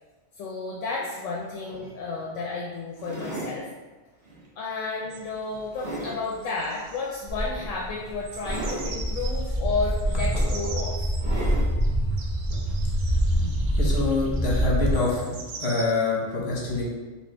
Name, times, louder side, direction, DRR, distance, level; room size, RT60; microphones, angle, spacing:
voice 1, 0.4-3.7 4.6-11.1, left 3 dB, 80° left, -3 dB, 0.9 m, -32 dB
sound 1, 1.7-1.9 3.0-3.6 4.2-4.5 5.0-6.2 7.5-7.7 8.4-8.9 9.8-9.9 10.3-10.8 11.2-11.7 12.5-12.6, right 1 dB, 45° right, 1.0 m, -35 dB
sound 2, 5.1-15.9, right 4 dB, 60° right, 0.6 m, -43 dB
Walk footsteps, 7.3-15.0, right 1 dB, 15° left, 1.2 m, -26 dB
voice 2, 13.7-16.8, left 3 dB, 60° left, -3 dB, 1.2 m, -26 dB
4.1 x 2.9 x 3.3 m, 1.3 s
omnidirectional pair, 1.3 m